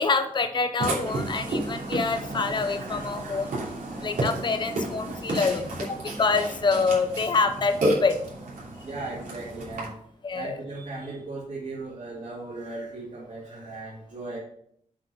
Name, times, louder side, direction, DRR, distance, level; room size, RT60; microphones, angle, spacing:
voice 1, 0.0-3.5 4.0-8.2 10.2-10.5, left 4 dB, 35° left, 8 dB, 0.7 m, -26 dB
Burping eructation, 0.8-9.9, right 1 dB, 90° right, 3.0 m, -31 dB
voice 2, 8.8-10.0 10.3-14.4, right 3 dB, 60° right, -9 dB, 2.7 m, -37 dB
7.8 x 4.7 x 5.6 m, 0.67 s
wide cardioid pair, 170°, 14 cm